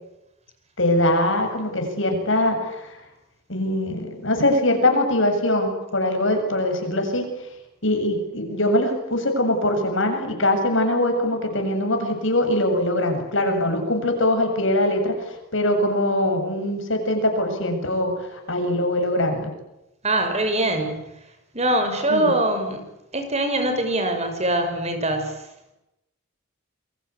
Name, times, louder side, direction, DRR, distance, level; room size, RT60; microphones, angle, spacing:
voice 1, 0.8-3.0 3.5-7.3 7.8-15.2 15.5-19.5 22.1-22.3, left 1 dB, 65° left, 5 dB, 7.5 m, -22 dB
voice 2, 20.0-21.1 21.5-22.8 23.1-25.4, right 1 dB, 30° right, 7 dB, 6.2 m, -23 dB
29.0 x 24.5 x 8.4 m, 0.89 s
head